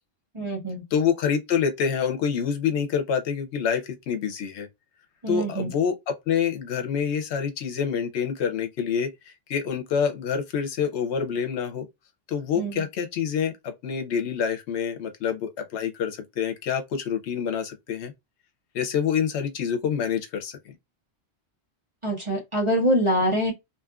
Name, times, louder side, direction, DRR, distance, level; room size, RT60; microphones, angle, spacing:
voice 1, 0.3-0.8 5.2-5.7 12.5-12.8 22.0-23.5, equal, 30° right, 0.9 m, -25 dB
voice 2, 0.9-4.7 5.3-11.9 12.3-18.1 18.7-20.7, left 7 dB, 80° left, 0.9 m, -27 dB
2.7 x 2.5 x 2.3 m
omnidirectional pair, 1.1 m